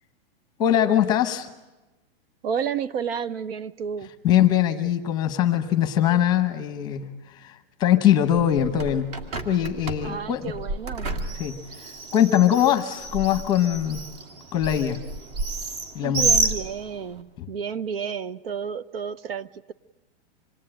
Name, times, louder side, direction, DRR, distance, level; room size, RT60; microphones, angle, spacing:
voice 1, 0.6-1.5 4.2-9.1 9.4-10.5 11.4-14.0 14.5-15.0 15.9-16.3 17.4-17.5, left 11 dB, 15° left, 8 dB, 0.9 m, -22 dB
voice 2, 2.4-4.1 10.0-11.1 16.0-19.7, right 7 dB, 70° right, 19 dB, 1.1 m, -31 dB
Bird, 8.3-17.2, right 3 dB, 40° right, 2.2 m, -30 dB
26.5 x 21.0 x 8.9 m, 1.1 s
supercardioid pair, 180°, 30 cm